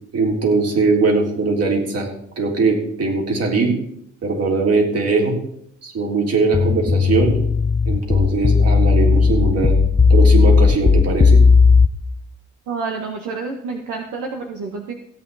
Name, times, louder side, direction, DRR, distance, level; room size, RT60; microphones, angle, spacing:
voice 1, 0.1-2.1 2.4-3.7 4.2-5.4 5.8-7.4 7.9-9.8 10.1-11.4, right 3 dB, 55° right, 0 dB, 3.8 m, -20 dB
sound 1, 6.5-11.9, left 5 dB, 20° left, 0.8 m, -14 dB
voice 2, 12.7-14.9, right 4 dB, 80° right, 2 dB, 1.6 m, -28 dB
16.0 x 8.9 x 4.2 m, 0.71 s
cardioid pair, 90°, 30 cm